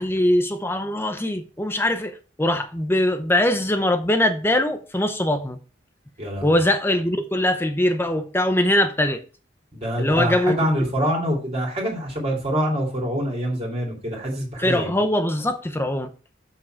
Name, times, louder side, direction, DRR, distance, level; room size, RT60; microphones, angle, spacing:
voice 1, 0.0-5.6 6.4-9.2 10.0-10.7 14.6-16.1, left 1 dB, 10° left, 0.6 m, -22 dB
voice 2, 6.2-6.6 9.7-14.9, equal, 35° right, 2.5 m, -25 dB
7.2 x 6.1 x 4.4 m
head